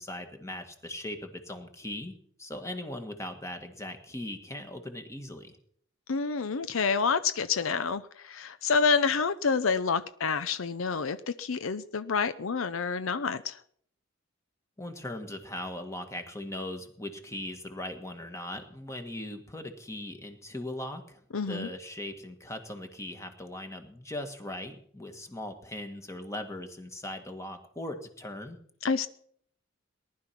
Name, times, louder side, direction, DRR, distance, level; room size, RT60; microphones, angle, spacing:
voice 1, 0.0-5.5 14.8-28.6, left 1 dB, 15° left, 6 dB, 1.8 m, -39 dB
voice 2, 6.1-13.6 21.3-21.7 28.8-29.1, left 5 dB, 75° left, 13 dB, 0.6 m, -28 dB
19.0 x 11.5 x 5.9 m, 0.63 s
head